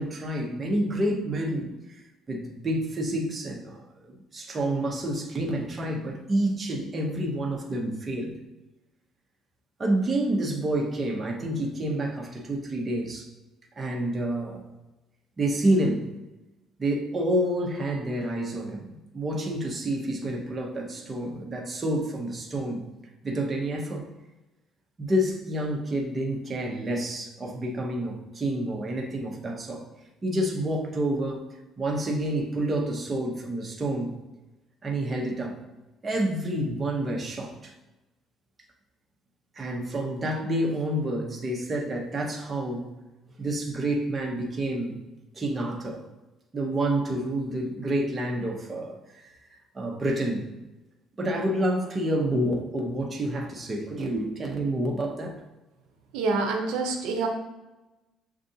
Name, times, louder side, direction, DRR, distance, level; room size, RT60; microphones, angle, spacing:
voice 1, 0.0-2.0 2.3-8.4 9.8-13.3 13.8-14.6 15.4-16.1 16.8-22.8 23.2-24.1 25.0-29.9 30.2-31.4 31.8-34.1 34.8-35.6 36.0-37.7 39.6-42.9 43.4-45.0 45.3-46.0 46.5-50.5 51.2-55.4, right 1 dB, 25° right, 0 dB, 0.8 m, -28 dB
voice 2, 56.1-57.3, right 3 dB, 90° right, 3 dB, 0.5 m, -26 dB
6.5 x 2.5 x 2.7 m, 1.1 s
cardioid pair, 120°, 0 cm